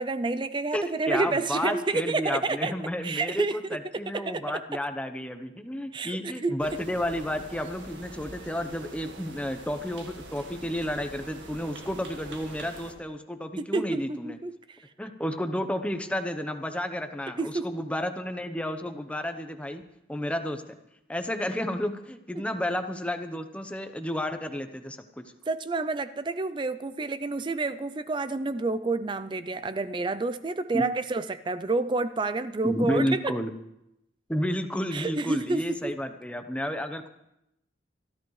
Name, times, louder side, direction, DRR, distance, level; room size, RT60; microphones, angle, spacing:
voice 1, 0.0-2.7 3.0-4.6 5.9-6.6 13.6-14.8 17.4-17.8 22.3-22.4 25.5-33.3 34.9-36.0, right 3 dB, 25° right, 13 dB, 0.4 m, -29 dB
voice 2, 0.7-14.4 15.0-19.8 20.1-20.6 21.1-25.3 30.7-30.9 32.6-33.5 34.3-37.1, left 1 dB, 5° left, 7 dB, 0.8 m, -31 dB
sound 1, 6.6-12.9, right 2 dB, 80° right, 1.8 m, -45 dB
24.0 x 13.0 x 3.2 m, 0.85 s
head